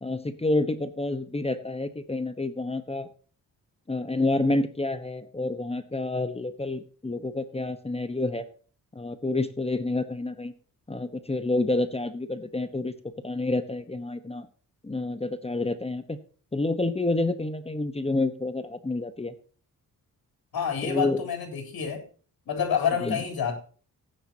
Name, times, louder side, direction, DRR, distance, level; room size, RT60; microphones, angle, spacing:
voice 1, 0.0-3.1 3.9-8.5 8.9-10.5 10.9-12.9 13.2-14.5 14.8-16.2 16.5-19.3 20.8-21.2 23.0-23.2, left 2 dB, 15° left, 11 dB, 1.1 m, -28 dB
voice 2, 20.5-22.0 22.5-23.6, left 7 dB, 85° left, 3 dB, 3.6 m, -28 dB
17.0 x 9.7 x 2.8 m, 0.40 s
wide cardioid pair, 115°, 36 cm